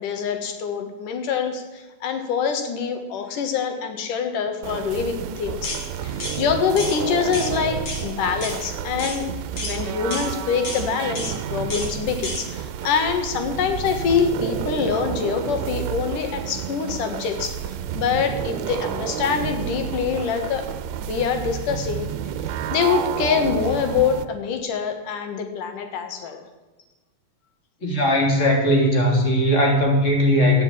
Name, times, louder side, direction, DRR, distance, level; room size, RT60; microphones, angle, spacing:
voice 1, 0.0-9.2 9.6-20.7 21.0-22.1 22.4-26.4, left 6 dB, 90° left, 6 dB, 3.2 m, -25 dB
sound 1, 4.6-24.2, right 9 dB, 75° right, 1.9 m, -30 dB
sound 2, 5.6-5.8 6.2-6.4 6.8-7.0 7.3-7.5 7.9-8.0 8.4-8.6 9.0-9.2 9.6-9.8 10.1-10.3 10.6-10.8 11.2-11.3 11.7-11.9 12.2-12.4, left 2 dB, 45° left, 3.6 m, -31 dB
voice 2, 27.8-30.6, equal, 25° left, 1 dB, 3.1 m, -18 dB
13.5 x 9.6 x 8.6 m, 1.2 s
omnidirectional pair, 3.6 m